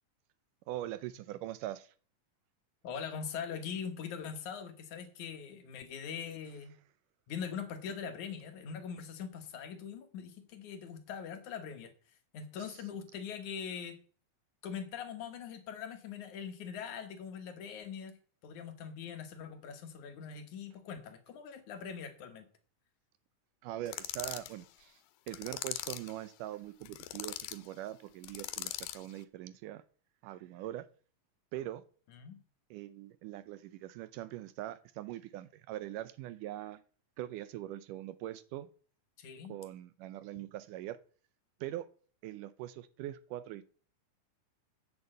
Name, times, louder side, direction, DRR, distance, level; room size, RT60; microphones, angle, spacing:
voice 1, 0.7-1.9 12.6-12.8 23.6-25.0 25.3-29.8 30.2-30.9 31.5-31.8 32.7-36.8 37.2-38.7 39.5-41.0 41.6-41.9 42.2-43.6, right 14 dB, 80° right, 2.0 m, -42 dB
voice 2, 2.8-6.7 7.3-11.9 12.3-14.0 14.6-18.1 18.4-22.5 32.1-32.4 39.2-39.5, left 7 dB, 65° left, 2.5 m, -42 dB
sound 1, 23.9-24.5 25.3-26.1 26.8-27.6 28.2-29.1, left 14 dB, 85° left, 2.5 m, -40 dB
8.4 x 7.1 x 7.7 m
omnidirectional pair, 3.9 m